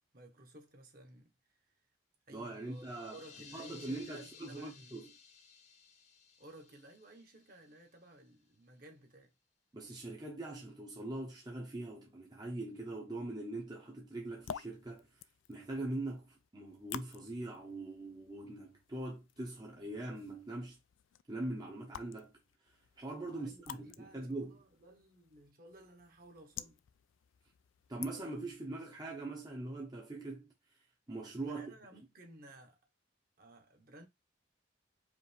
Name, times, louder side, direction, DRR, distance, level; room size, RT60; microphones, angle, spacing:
voice 1, 0.1-1.7 2.3-5.0 6.4-9.3 23.2-26.8 31.5-32.8 33.4-34.1, right 1 dB, 45° right, 1.1 m, -56 dB
voice 2, 2.3-3.2 3.5-5.1 9.7-15.1 15.5-20.8 21.3-22.4 23.0-24.6 27.9-30.5 31.1-31.7, right 2 dB, 20° right, 0.7 m, -42 dB
sound 1, 2.6-8.2, left 6 dB, 35° left, 0.7 m, -58 dB
sound 2, 14.2-28.6, left 9 dB, 85° left, 0.3 m, -52 dB
5.0 x 2.5 x 3.3 m
head